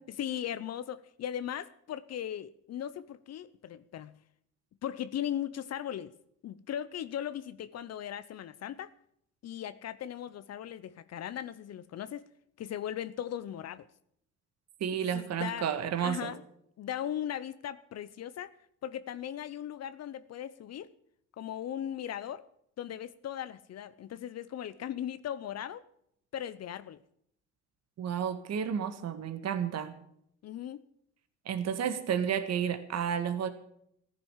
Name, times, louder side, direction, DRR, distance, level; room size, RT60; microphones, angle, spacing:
voice 1, 0.1-4.1 4.8-6.1 6.4-8.9 9.4-12.3 12.6-13.9 14.9-15.7 16.0-16.4 16.8-18.5 18.8-20.9 21.4-22.4 22.8-25.8 26.3-27.0 30.4-30.8, left 10 dB, 55° left, 15 dB, 0.8 m, -38 dB
voice 2, 14.8-16.3 28.0-29.9 31.4-33.5, right 8 dB, 55° right, 9 dB, 1.8 m, -31 dB
14.5 x 10.5 x 7.3 m, 0.71 s
cardioid pair, 95°, 32 cm